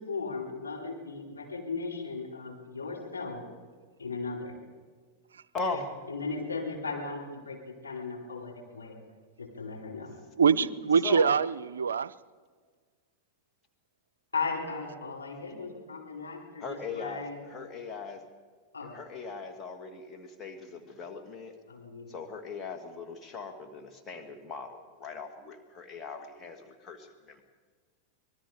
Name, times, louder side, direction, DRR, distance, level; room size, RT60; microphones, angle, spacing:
voice 1, 0.0-3.4 4.0-4.6 5.7-5.8 6.1-9.0 9.4-10.1 10.5-10.7 14.3-17.4 18.7-19.0 21.7-22.1, left 4 dB, 75° left, 4.2 m, -37 dB
voice 2, 5.5-5.9 11.0-11.4 16.6-18.2 18.8-21.5 22.1-27.4, left 4 dB, 25° left, 2.3 m, -39 dB
voice 3, 10.4-12.1, right 6 dB, 70° right, 0.5 m, -24 dB
25.5 x 20.0 x 5.0 m
figure-of-eight pair, 90°, 0 cm